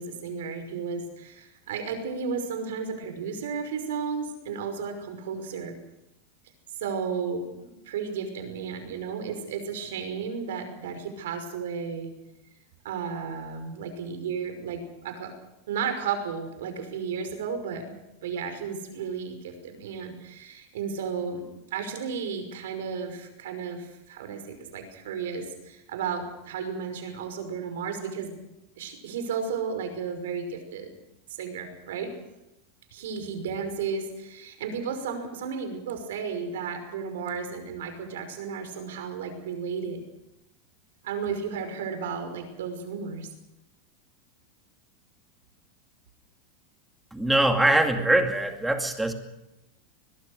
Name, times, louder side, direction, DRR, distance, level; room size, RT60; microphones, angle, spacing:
voice 1, 0.0-5.7 6.8-12.1 12.8-15.3 15.7-28.4 28.8-30.9 31.3-32.1 32.9-40.0 41.0-43.3, right 6 dB, 85° right, 7 dB, 5.5 m, -33 dB
voice 2, 47.1-49.1, right 1 dB, 5° right, 4 dB, 2.4 m, -22 dB
22.5 x 21.0 x 6.5 m, 0.93 s
supercardioid pair, 150°, 0 cm